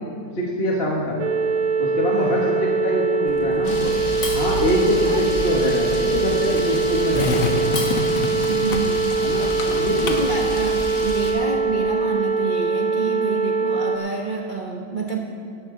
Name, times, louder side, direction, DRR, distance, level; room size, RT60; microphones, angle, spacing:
voice 1, 0.3-1.2 1.8-3.9 4.3-7.6 9.2-10.3, left 1 dB, 35° left, -3 dB, 1.2 m, -24 dB
sound 1, 1.2-14.0, right 4 dB, 85° right, 1.7 m, -23 dB
voice 2, 2.1-2.8 5.0-5.3 8.5-9.0 9.9-15.2, right 4 dB, 60° right, 0 dB, 0.5 m, -28 dB
Skateboard, 3.3-11.3, left 3 dB, 70° left, 1.8 m, -31 dB
Camera, 3.6-11.3, left 1 dB, 55° left, 2.8 m, -31 dB
17.0 x 12.0 x 3.7 m, 2.4 s
omnidirectional pair, 2.3 m